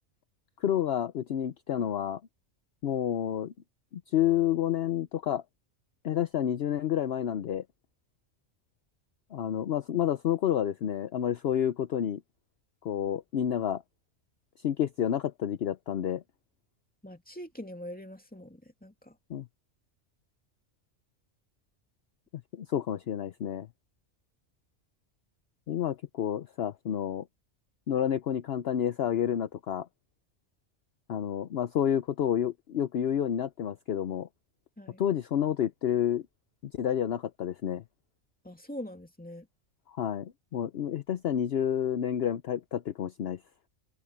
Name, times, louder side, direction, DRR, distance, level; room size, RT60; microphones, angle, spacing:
voice 1, 0.6-2.2 2.8-3.5 4.1-5.4 6.0-7.6 9.3-12.2 12.8-13.8 14.6-16.2 19.3-19.5 22.5-23.7 25.7-27.3 27.9-29.9 31.1-34.3 35.0-36.2 36.6-37.8 39.9-43.4, left 10 dB, 60° left, 0.9 m, -29 dB
voice 2, 17.0-19.2 34.8-35.0 38.4-39.5, equal, 5° left, 2.5 m, -43 dB
open air
omnidirectional pair, 1.3 m